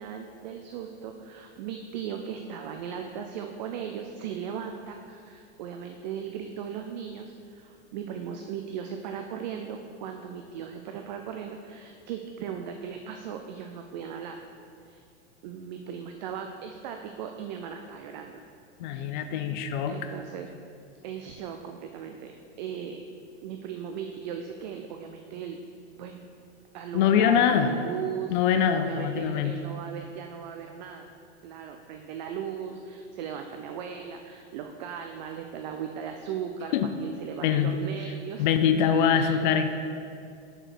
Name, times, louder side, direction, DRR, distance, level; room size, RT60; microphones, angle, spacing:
voice 1, 0.0-14.4 14.8-15.0 15.4-18.4 18.9-19.4 19.8-20.5 21.0-23.0 23.4-25.6 25.9-26.3 26.7-28.4 28.7-31.1 31.4-36.7 37.0-38.5 38.8-39.4, right 8 dB, 40° right, 4 dB, 0.4 m, -38 dB
voice 2, 18.8-20.0 26.9-27.7 28.3-29.5 36.7-36.9 37.4-37.8 38.4-39.7, left 8 dB, 45° left, 8 dB, 0.4 m, -23 dB
6.3 x 5.0 x 6.0 m, 2.4 s
supercardioid pair, 155°, 34 cm